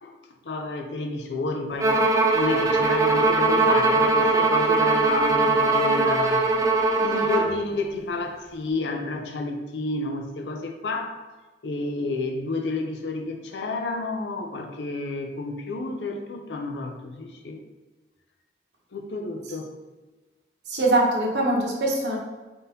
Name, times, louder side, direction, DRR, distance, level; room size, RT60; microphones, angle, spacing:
voice 1, 0.4-2.0 2.3-6.4 7.0-11.2 11.6-17.6 18.9-19.7, left 3 dB, 80° left, 3 dB, 0.5 m, -30 dB
Bowed string instrument, 1.8-7.5, right 3 dB, 20° right, 0.4 m, -21 dB
voice 2, 20.7-22.2, right 2 dB, 75° right, -1 dB, 0.9 m, -22 dB
3.8 x 3.7 x 2.8 m, 1.2 s
head